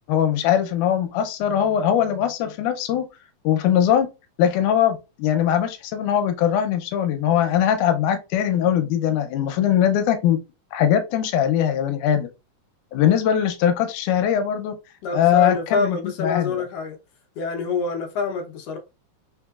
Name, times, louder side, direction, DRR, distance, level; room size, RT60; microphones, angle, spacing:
voice 1, 0.1-3.1 3.4-4.1 4.4-10.4 10.7-12.3 12.9-14.7 15.1-16.6, left 10 dB, 85° left, 2.1 m, -21 dB
voice 2, 15.0-17.0 17.4-18.8, left 4 dB, 70° left, 1.6 m, -26 dB
4.3 x 3.7 x 2.3 m
omnidirectional pair, 3.5 m